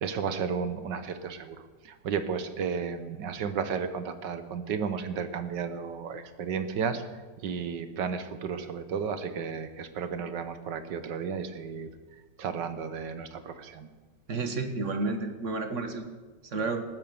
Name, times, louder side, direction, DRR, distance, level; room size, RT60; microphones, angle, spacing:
voice 1, 0.0-7.0 7.4-11.9 12.4-13.9, right 6 dB, 70° right, 10 dB, 1.7 m, -33 dB
voice 2, 14.3-16.1 16.5-16.8, right 3 dB, 45° right, 6 dB, 1.6 m, -31 dB
19.0 x 9.3 x 7.0 m, 1.4 s
omnidirectional pair, 2.0 m